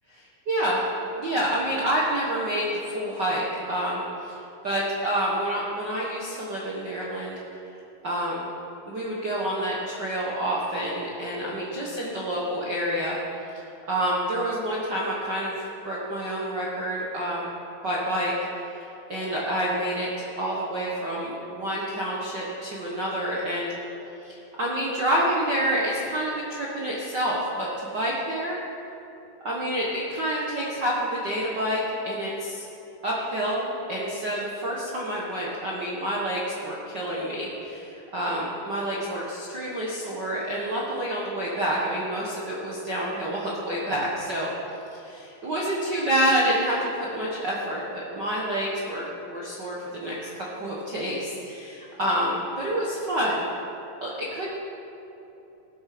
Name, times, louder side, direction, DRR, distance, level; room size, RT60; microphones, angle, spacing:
voice 1, 0.1-0.8 1.1-7.4 8.0-8.5 8.8-13.2 13.9-15.5 15.8-17.5 17.8-18.7 19.1-23.7 24.2-28.6 29.4-32.6 33.0-44.5 44.9-53.5 54.0-54.6, right 1 dB, 55° right, -5 dB, 1.1 m, -28 dB
16.0 x 8.3 x 6.0 m, 3.0 s
omnidirectional pair, 4.1 m